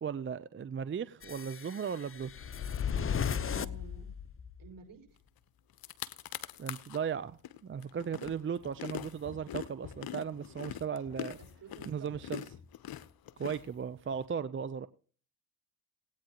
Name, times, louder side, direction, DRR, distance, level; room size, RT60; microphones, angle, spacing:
voice 1, 0.0-2.5 6.6-11.4 11.9-12.4 13.4-14.9, right 7 dB, 30° right, 0.6 m, -37 dB
sound 1, 1.2-4.7, left 7 dB, 30° left, 0.8 m, -36 dB
voice 2, 3.4-4.1 4.6-5.1 11.4-12.1, right 5 dB, 50° right, 5.5 m, -51 dB
sound 2, 5.4-5.5 5.7-7.0 7.4-14.2, left 11 dB, 55° left, 1.0 m, -43 dB
19.0 x 8.9 x 3.0 m
hypercardioid pair, 55°, 43 cm